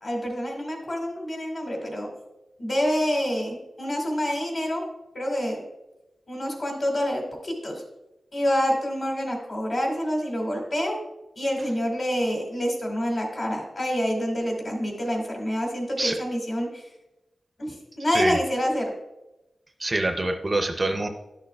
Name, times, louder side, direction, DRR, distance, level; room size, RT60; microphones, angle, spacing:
voice 1, 0.0-2.1 2.6-4.8 5.1-5.6 6.3-7.8 8.3-11.0 11.4-16.8 17.6-18.9, equal, 40° left, 1 dB, 1.8 m, -27 dB
voice 2, 19.8-21.1, right 2 dB, 25° right, 5 dB, 0.5 m, -25 dB
11.5 x 6.4 x 2.3 m, 0.96 s
wide cardioid pair, 155°, 0 cm